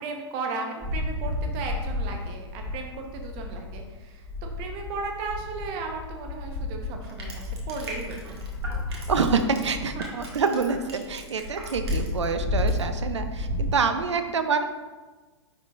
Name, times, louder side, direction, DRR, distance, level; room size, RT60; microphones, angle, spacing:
voice 1, 0.0-4.2 4.6-8.4 12.4-12.5, right 4 dB, 35° right, 3 dB, 1.0 m, -35 dB
sound 1, 0.8-3.9 4.2-13.8, left 2 dB, 15° right, 1.6 m, -32 dB
Crushing, 7.0-12.3 12.6-12.8, right 2 dB, 60° right, 1.5 m, -41 dB
voice 2, 8.9-14.6, right 5 dB, 75° right, 8 dB, 0.6 m, -26 dB
10.0 x 3.8 x 2.4 m, 1.3 s
figure-of-eight pair, 115°, 15 cm